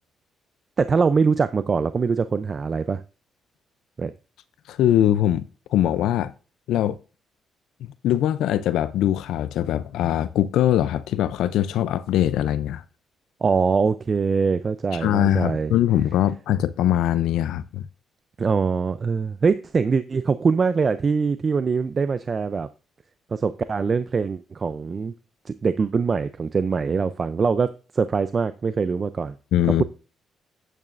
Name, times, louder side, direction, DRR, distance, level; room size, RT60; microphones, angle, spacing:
voice 1, 0.8-3.0 4.0-4.1 13.4-15.8 18.4-22.7 23.3-25.1 25.5-29.3, right 5 dB, 40° right, 0.4 m, -23 dB
voice 2, 4.7-5.4 5.7-6.3 6.7-7.0 7.8-12.8 14.9-17.9 29.5-29.8, left 12 dB, 85° left, 0.4 m, -22 dB
9.1 x 8.7 x 2.5 m
cardioid pair, 90°, 0 cm